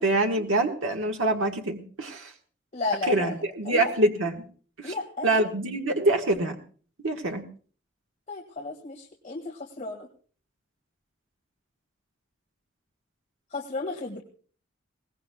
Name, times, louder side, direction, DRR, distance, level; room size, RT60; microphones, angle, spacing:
voice 1, 0.0-2.3 3.1-4.4 4.8-4.9 5.2-6.6 7.0-7.4, right 2 dB, 85° right, 2 dB, 1.4 m, -25 dB
voice 2, 2.7-3.3 3.6-3.9 4.8-5.3 8.3-10.1 13.5-14.2, left 3 dB, 40° left, -1 dB, 1.8 m, -33 dB
22.0 x 19.0 x 2.2 m, 0.43 s
head